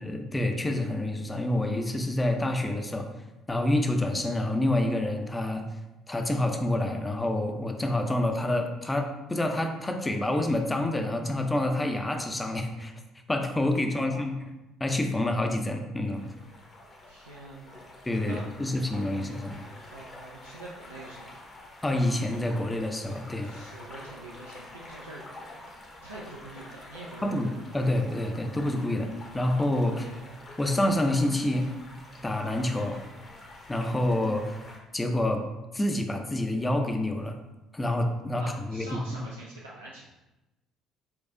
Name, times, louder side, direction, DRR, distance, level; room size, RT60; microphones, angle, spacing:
voice 1, 0.0-3.1 3.5-5.6 6.1-12.9 13.3-14.4 14.8-16.2 18.1-19.6 21.8-23.5 27.2-30.1 30.6-31.7 32.2-33.0 33.7-34.6 34.9-35.4 35.7-37.4 37.7-39.0, left 1 dB, 15° left, 4 dB, 0.5 m, -27 dB
voice 2, 13.9-14.3 17.1-17.8 18.2-18.4 19.9-21.4 23.4-25.5 26.0-27.6 29.9-30.2 38.3-40.0, right 2 dB, 85° right, -5 dB, 0.4 m, -45 dB
sound 1, 16.1-34.8, left 1 dB, 40° left, 0.9 m, -47 dB
4.4 x 2.3 x 3.7 m, 1.0 s
figure-of-eight pair, 50°, 0 cm